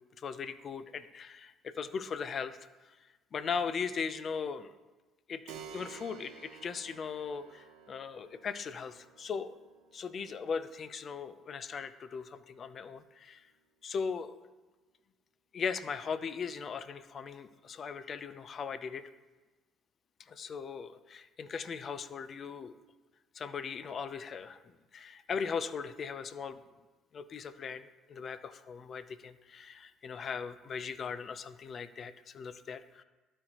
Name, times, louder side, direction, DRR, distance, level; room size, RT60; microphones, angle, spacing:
voice 1, 0.2-3.0 3.3-4.7 5.3-9.6 9.9-13.5 13.8-14.3 15.5-19.0 20.2-22.7 23.3-26.6 27.1-33.0, left 6 dB, 45° left, 13 dB, 0.5 m, -39 dB
Keyboard (musical), 5.5-13.7, right 6 dB, 80° right, 1.0 m, -54 dB
12.5 x 4.5 x 3.0 m, 1.2 s
supercardioid pair, 75°, 0 cm